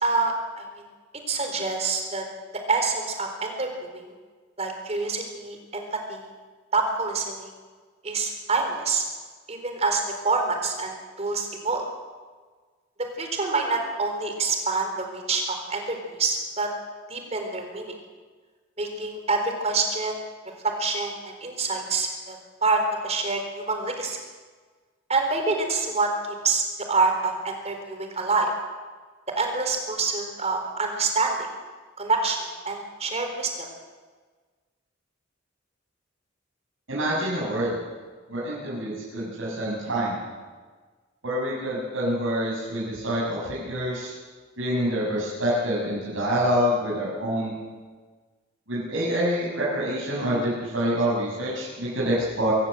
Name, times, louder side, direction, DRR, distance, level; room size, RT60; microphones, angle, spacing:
voice 1, 0.0-0.7 1.3-2.2 2.5-4.1 4.6-6.3 6.7-7.5 8.0-9.0 9.5-11.8 13.2-16.7 17.1-18.0 18.8-20.2 20.6-24.2 25.1-28.5 29.4-31.5 32.0-32.4 32.6-33.5, right 3 dB, 35° right, 4 dB, 4.1 m, -26 dB
voice 2, 36.9-37.8 38.3-40.2 41.2-44.1 44.6-47.5 48.7-52.5, equal, 80° right, -7 dB, 7.0 m, -26 dB
24.5 x 15.5 x 7.9 m, 1.4 s
head